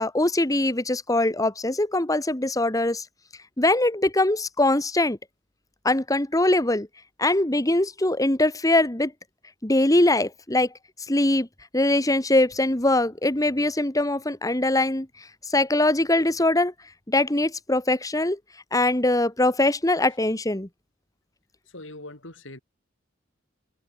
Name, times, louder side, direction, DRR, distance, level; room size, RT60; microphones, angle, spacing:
voice 1, 0.0-3.0 3.6-5.2 5.8-6.9 7.2-9.1 9.6-10.7 11.1-11.5 11.7-15.1 15.5-16.7 17.1-18.4 18.7-20.7, left 2 dB, 20° left, 1.6 m, -22 dB
voice 2, 21.7-22.6, left 2 dB, 85° left, 7.5 m, -41 dB
head